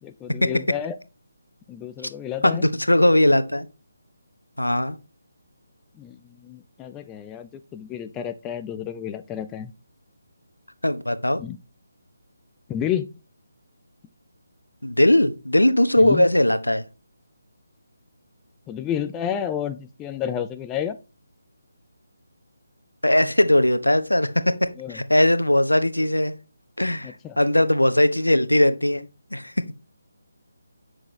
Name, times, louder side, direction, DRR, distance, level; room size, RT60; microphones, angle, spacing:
voice 1, 0.0-1.0 1.7-2.6 6.0-6.2 6.4-9.7 11.4-11.6 12.7-13.1 16.0-16.3 18.7-21.0 24.8-25.0 27.0-27.4, left 9 dB, 10° left, 9 dB, 0.4 m, -30 dB
voice 2, 2.4-3.7 4.6-5.0 10.8-11.4 14.8-16.8 23.0-26.3 26.8-29.0 29.3-29.5, left 1 dB, 85° left, 12 dB, 0.9 m, -19 dB
9.5 x 6.3 x 3.1 m, 0.31 s
figure-of-eight pair, 150°, 0 cm